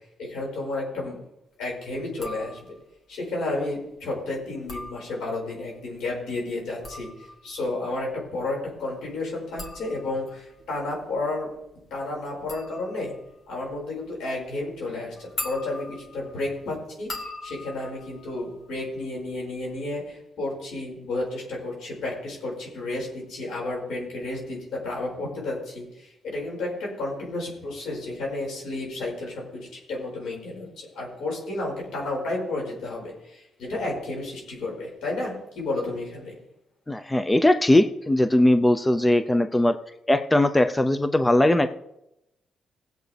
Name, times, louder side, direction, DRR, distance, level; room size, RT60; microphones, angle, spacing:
voice 1, 0.2-1.2 1.6-2.8 3.1-11.5 11.9-13.1 13.5-36.4, left 2 dB, 90° left, -2 dB, 5.2 m, -32 dB
sound 1, 2.1-3.0 4.5-5.6 6.6-19.3 19.6-20.1, left 2 dB, 45° left, 1.9 m, -42 dB
voice 2, 36.9-39.8 40.1-41.7, left 1 dB, 10° left, 10 dB, 0.5 m, -20 dB
19.5 x 7.9 x 3.4 m, 0.85 s
cardioid pair, 125°, 0 cm